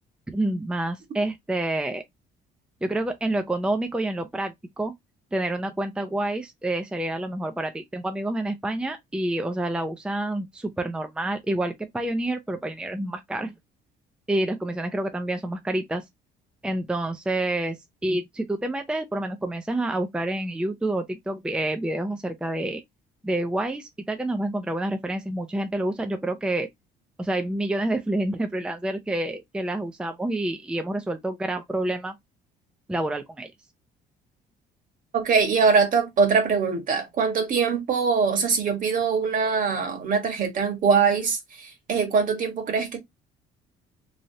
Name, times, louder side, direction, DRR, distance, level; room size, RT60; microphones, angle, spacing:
voice 1, 0.3-2.0 2.8-4.9 5.3-13.5 14.3-16.0 16.6-22.8 23.2-26.7 27.2-32.2 32.9-33.5, right 1 dB, 5° right, 0.5 m, -28 dB
voice 2, 35.1-43.0, right 5 dB, 50° right, 1.4 m, -23 dB
3.2 x 2.5 x 2.7 m
cardioid pair, 110°, 17 cm